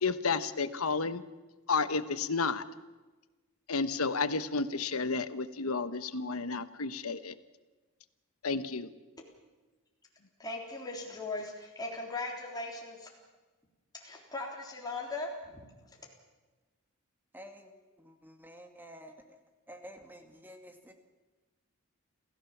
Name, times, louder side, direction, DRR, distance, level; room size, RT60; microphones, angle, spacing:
voice 1, 0.0-1.2 1.7-2.6 3.7-7.4 8.4-8.9, left 4 dB, 85° left, 12 dB, 1.1 m, -31 dB
voice 2, 10.4-13.1 14.0-15.6, left 2 dB, 20° left, -1 dB, 3.6 m, -39 dB
voice 3, 17.3-19.2 19.7-20.9, equal, 10° right, 5 dB, 2.1 m, -50 dB
28.5 x 15.0 x 7.3 m, 1.2 s
head